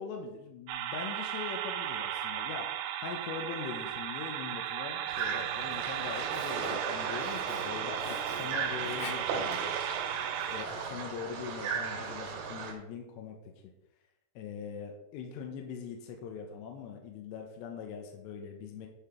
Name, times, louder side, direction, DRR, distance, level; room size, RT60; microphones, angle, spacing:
voice 1, 0.0-2.7 3.0-9.7 10.5-13.4 14.4-18.9, left 6 dB, 75° left, 2 dB, 2.7 m, -42 dB
sound 1, 0.7-10.7, right 11 dB, 85° right, 2.8 m, -36 dB
Sink (filling or washing), 5.0-11.0, left 3 dB, 60° left, 2.7 m, -49 dB
sound 2, 5.1-12.7, right 6 dB, 70° right, 4.0 m, -36 dB
10.5 x 5.7 x 4.4 m, 0.86 s
omnidirectional pair, 5.8 m